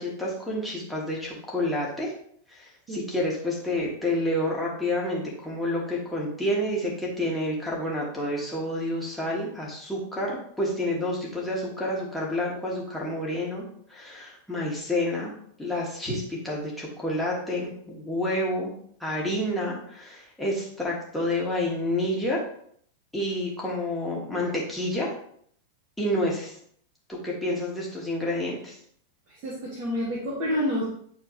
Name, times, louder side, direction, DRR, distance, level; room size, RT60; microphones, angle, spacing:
voice 1, 0.0-2.1 2.5-13.6 13.9-15.3 15.6-18.7 19.0-22.4 23.1-25.1 26.0-26.5 27.1-28.8, left 1 dB, 5° left, -4 dB, 2.4 m, -29 dB
voice 2, 29.4-30.8, equal, 40° right, -5 dB, 2.2 m, -28 dB
9.8 x 4.5 x 3.3 m, 0.63 s
figure-of-eight pair, 90°, 0 cm